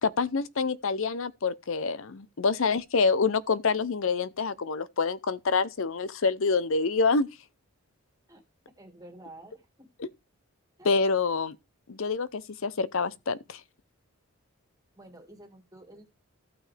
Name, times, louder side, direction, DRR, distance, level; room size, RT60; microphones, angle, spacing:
voice 1, 0.0-7.3 10.0-10.1 10.8-11.6 11.9-13.6, left 4 dB, 60° left, 0.6 m, -27 dB
voice 2, 8.8-9.7 10.8-11.0 15.0-16.1, right 1 dB, 15° right, 1.9 m, -50 dB
14.5 x 6.0 x 3.3 m
head